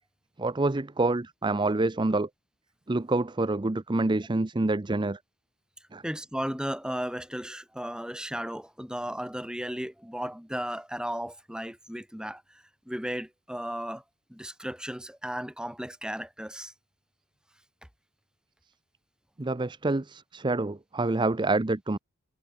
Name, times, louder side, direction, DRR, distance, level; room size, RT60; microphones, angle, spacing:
voice 1, 0.4-2.3 2.9-5.2 5.9-6.0 19.4-22.0, right 2 dB, 20° right, 0.5 m, -27 dB
voice 2, 6.0-12.4 12.9-14.0 14.3-16.7, equal, 5° right, 8.0 m, -35 dB
head